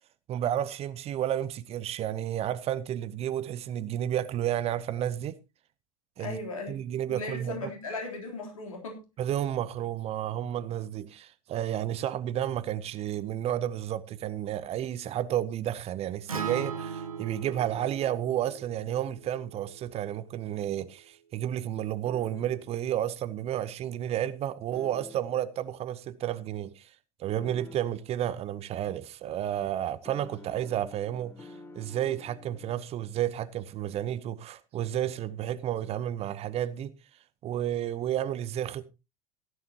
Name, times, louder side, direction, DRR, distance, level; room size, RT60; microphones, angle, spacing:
voice 1, 0.3-5.4 6.2-6.4 6.7-7.7 9.2-26.9 27.2-31.5 31.7-36.9 37.4-38.8, right 11 dB, 35° right, 0.8 m, -31 dB
voice 2, 6.2-6.8 7.1-9.0, left 3 dB, 75° left, 3.5 m, -37 dB
Acoustic guitar, 16.3-20.5, right 6 dB, 80° right, 1.1 m, -39 dB
sound 1, 22.1-22.8 24.7-25.5 27.4-28.2 30.1-32.7, left 2 dB, 15° left, 1.6 m, -49 dB
16.0 x 11.0 x 2.9 m
figure-of-eight pair, 75°, 18 cm